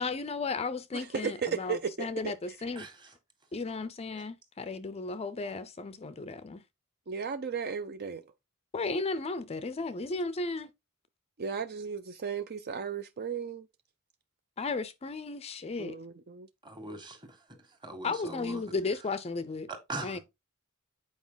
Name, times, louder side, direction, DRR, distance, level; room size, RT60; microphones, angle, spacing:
voice 1, 0.0-2.9 3.5-6.6 8.7-10.7 14.6-16.0 18.0-19.7 20.0-20.2, left 3 dB, 30° left, 0.5 m, -34 dB
voice 2, 0.9-2.3 7.1-8.2 11.4-13.7 15.8-16.5, right 6 dB, 45° right, 0.6 m, -35 dB
voice 3, 16.6-17.4 17.8-18.6 19.9-20.2, right 2 dB, 20° right, 1.9 m, -40 dB
8.3 x 4.9 x 3.9 m
head